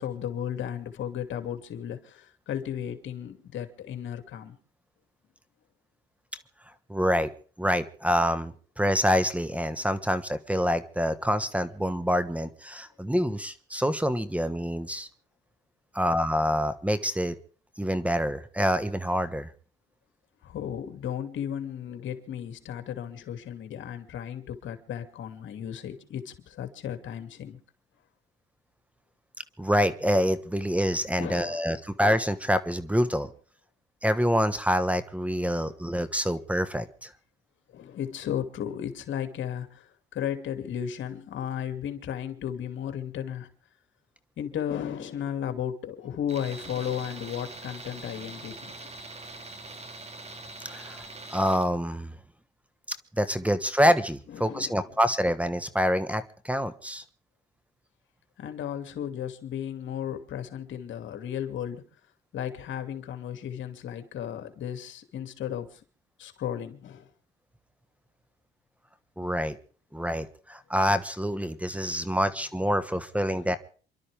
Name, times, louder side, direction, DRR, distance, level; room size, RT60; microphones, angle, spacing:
voice 1, 0.0-4.6 20.4-27.6 31.2-31.7 33.0-33.2 35.6-35.8 37.7-43.5 44.4-48.7 54.3-54.9 58.4-61.8 62.3-65.8 66.2-67.1, left 9 dB, 75° left, 2.6 m, -35 dB
voice 2, 6.9-7.3 7.6-15.1 15.9-17.3 17.8-19.5 29.6-33.3 34.0-37.1 50.7-51.0 51.3-52.1 53.2-57.0 69.2-69.6 69.9-73.6, equal, 5° right, 1.4 m, -26 dB
Tools, 46.3-51.7, right 2 dB, 30° right, 2.6 m, -43 dB
28.0 x 12.0 x 3.5 m
cardioid pair, 90°, 20 cm